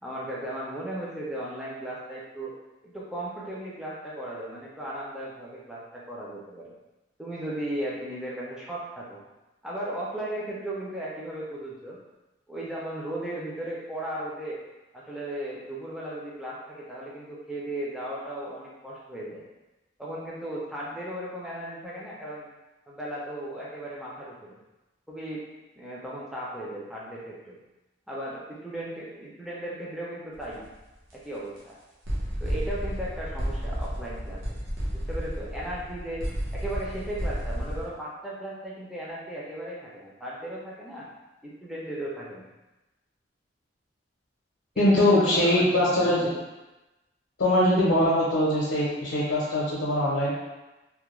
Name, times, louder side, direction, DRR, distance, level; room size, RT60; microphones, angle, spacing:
voice 1, 0.0-2.5 2.8-6.7 7.2-9.2 9.6-12.0 12.5-14.6 14.9-19.4 20.0-22.5 22.9-24.6 25.1-25.4 25.8-27.6 28.1-30.6 31.1-31.8 32.4-34.4 34.9-36.3 36.5-41.1 41.4-42.5 44.7-46.2, right 1 dB, ahead, -6 dB, 0.3 m, -36 dB
sound 1, 30.3-30.7 31.1-31.2 31.6-31.7 32.0-37.9, equal, 80° right, 0.7 m, -32 dB
voice 2, 44.8-46.3 47.4-50.3, left 1 dB, 85° left, -6 dB, 0.6 m, -22 dB
2.2 x 2.0 x 2.9 m, 1.1 s
head